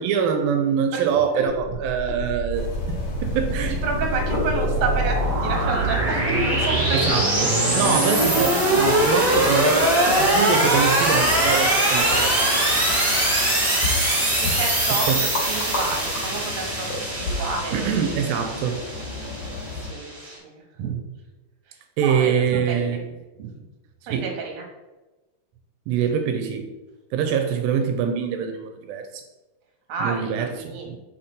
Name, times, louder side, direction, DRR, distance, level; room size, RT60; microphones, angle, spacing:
voice 1, 0.0-3.8 6.9-12.4 15.1-15.3 17.7-18.8 22.0-23.0 24.1-24.4 25.9-26.7 27.1-29.2 30.0-31.0, right 7 dB, 85° right, 6 dB, 2.3 m, -24 dB
sound 1, 1.7-20.3, right 1 dB, 25° right, 2.4 m, -22 dB
sound 2, 2.5-19.9, left 3 dB, 60° left, 2.9 m, -34 dB
voice 2, 3.8-7.8 12.1-12.7 13.1-13.5 14.4-18.3 19.8-21.0 22.0-23.0 23.4-23.5 24.1-24.6 29.9-30.9, right 4 dB, 55° right, 0 dB, 2.3 m, -30 dB
6.3 x 4.3 x 5.1 m, 1.1 s
omnidirectional pair, 4.1 m